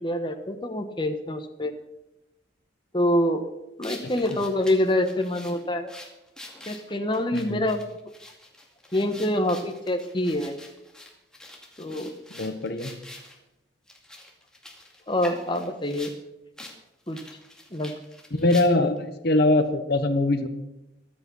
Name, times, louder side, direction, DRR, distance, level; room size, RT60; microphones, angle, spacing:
voice 1, 0.0-1.7 2.9-3.5 3.8-5.9 6.7-7.8 8.9-10.6 11.8-12.1 15.1-16.1 17.1-17.2 17.7-17.9, left 1 dB, 25° left, 5 dB, 1.2 m, -26 dB
sound 1, 3.8-13.4 13.9-16.2 16.6-16.8 17.1-19.0, left 1 dB, 5° left, 2.3 m, -45 dB
voice 2, 7.3-7.6 12.3-12.9 18.3-20.5, left 2 dB, 55° left, 8 dB, 1.1 m, -23 dB
24.0 x 8.6 x 5.5 m, 0.92 s
head